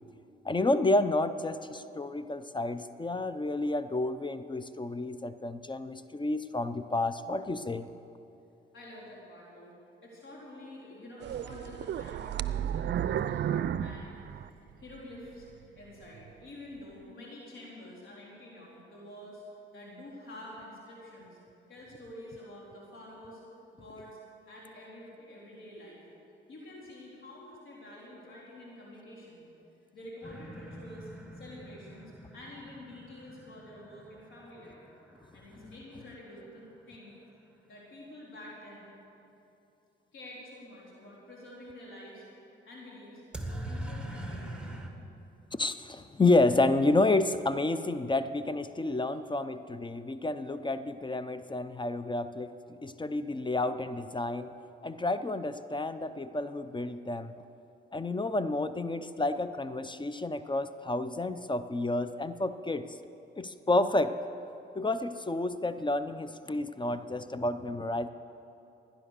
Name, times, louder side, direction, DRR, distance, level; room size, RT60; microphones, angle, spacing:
voice 1, 0.4-7.9 35.6-35.7 45.5-54.5 54.8-57.3 57.9-62.9 63.4-64.1 64.8-68.1, left 2 dB, 25° left, 12 dB, 0.6 m, -30 dB
voice 2, 8.7-9.7 10.0-14.2 14.8-15.5 15.8-19.4 19.7-21.4 21.7-23.4 23.7-24.2 24.4-26.1 26.5-29.4 29.9-34.8 35.3-37.2 37.6-38.9 40.1-42.2 42.6-43.2 43.5-44.9 49.0-49.1, left 1 dB, 75° left, -4 dB, 3.9 m, -48 dB
sound 1, 11.2-15.0 15.4-15.5 16.1-16.3, right 10 dB, 60° right, 0.5 m, -33 dB
sound 2, 30.2-36.0 43.3-44.9, right 1 dB, 5° right, 1.7 m, -43 dB
17.0 x 10.5 x 6.6 m, 2.8 s
cardioid pair, 65°, 21 cm